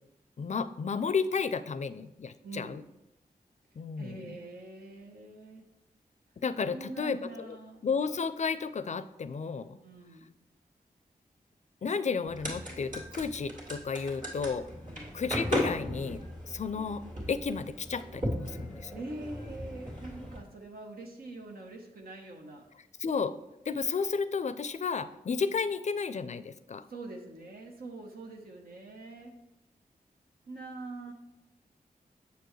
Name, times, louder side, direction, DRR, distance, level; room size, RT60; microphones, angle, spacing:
voice 1, 0.4-2.8 3.8-4.4 6.4-7.6 7.8-9.8 11.8-14.6 15.1-18.9 23.0-23.3 23.7-26.8, left 5 dB, 50° left, 14 dB, 0.4 m, -32 dB
voice 2, 2.4-2.8 4.0-5.7 6.7-7.8 9.8-10.3 14.8-15.1 16.6-16.8 18.9-22.7 26.9-29.4 30.5-31.1, right 2 dB, 80° right, 1 dB, 0.9 m, -44 dB
sound 1, 12.3-20.4, equal, 60° right, 2.1 m, -37 dB
6.8 x 6.8 x 3.1 m, 0.95 s
cardioid pair, 60°, 15 cm